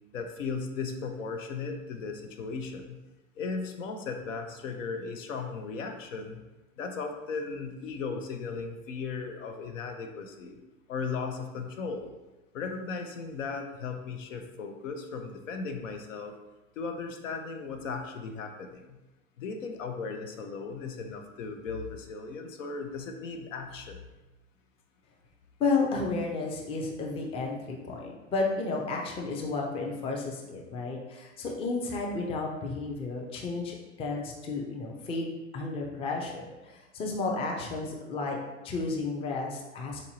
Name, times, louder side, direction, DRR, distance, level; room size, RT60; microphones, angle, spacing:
voice 1, 0.1-3.0 3.4-6.4 6.8-10.6 10.9-12.1 12.5-16.3 16.8-18.9 19.4-24.0, left 4 dB, 80° left, 4 dB, 0.6 m, -36 dB
voice 2, 25.6-38.4 38.6-40.0, left 3 dB, 15° left, 0 dB, 0.4 m, -32 dB
3.9 x 2.6 x 2.8 m, 1.1 s
hypercardioid pair, 100°, 38 cm